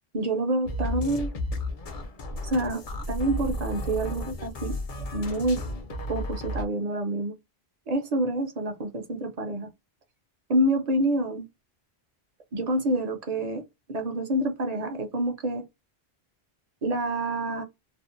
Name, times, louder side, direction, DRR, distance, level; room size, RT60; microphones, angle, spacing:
voice 1, 0.1-1.3 2.4-2.8 3.1-4.8 5.1-5.6 6.1-7.3 7.9-9.7 10.5-11.5 12.5-15.6 16.8-17.6, right 1 dB, 50° right, 0.6 m, -27 dB
sound 1, 0.6-6.6, left 1 dB, 50° left, 0.5 m, -33 dB
2.6 x 2.0 x 2.4 m
omnidirectional pair, 1.1 m